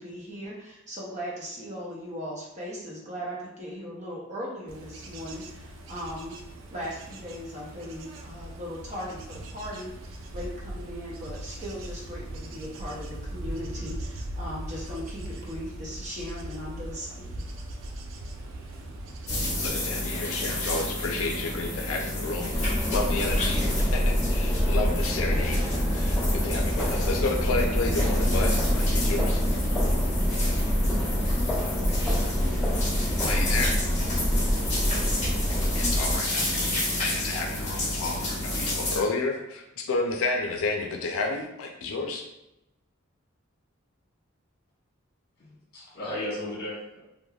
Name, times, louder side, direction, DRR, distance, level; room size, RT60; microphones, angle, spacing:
voice 1, 0.0-6.4 6.7-17.5, equal, 35° right, -4 dB, 0.6 m, -38 dB
Bird / Insect / Wind, 4.7-19.7, right 1 dB, 70° right, 0.3 m, -39 dB
sound 1, 19.3-39.0, left 1 dB, 35° left, 1.0 m, -31 dB
voice 2, 19.6-25.6 25.9-29.4 33.2-33.8 35.5-42.2, left 3 dB, 85° left, 2 dB, 0.4 m, -31 dB
sound 2, 22.5-36.2, equal, 5° right, 1.1 m, -26 dB
voice 3, 45.4-47.0, left 1 dB, 50° left, -6 dB, 1.2 m, -35 dB
3.2 x 2.1 x 2.2 m, 0.91 s
head